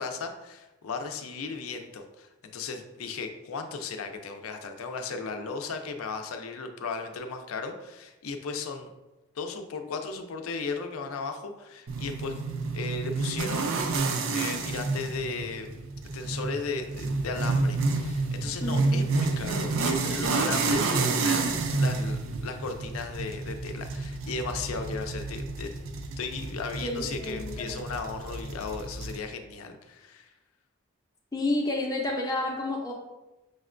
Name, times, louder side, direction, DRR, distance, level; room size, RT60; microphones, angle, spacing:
voice 1, 0.0-8.9 9.4-12.4 12.7-14.0 14.3-15.8 16.1-21.4 21.8-25.7 26.2-30.3, left 4 dB, 90° left, 6 dB, 0.4 m, -36 dB
sound 1, 11.9-29.2, right 3 dB, 70° right, 0.4 m, -29 dB
voice 2, 18.6-19.0 26.8-27.8 31.3-32.9, left 2 dB, 15° left, -1 dB, 0.4 m, -30 dB
6.3 x 2.2 x 2.5 m, 1.0 s
head